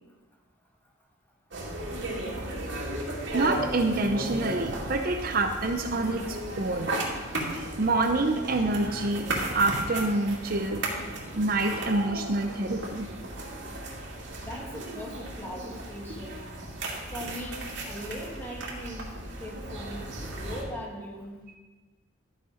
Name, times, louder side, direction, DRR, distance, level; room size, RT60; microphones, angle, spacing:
sound 1, 1.5-20.6, right 1 dB, 60° right, 2.5 m, -35 dB
voice 1, 3.3-6.9 7.5-10.8 11.3-13.1, right 2 dB, 45° right, 5 dB, 0.6 m, -27 dB
voice 2, 14.4-16.5 17.1-19.1 19.4-20.0 20.3-21.3, equal, 10° left, -3 dB, 2.1 m, -40 dB
13.0 x 6.6 x 5.1 m, 1.2 s
head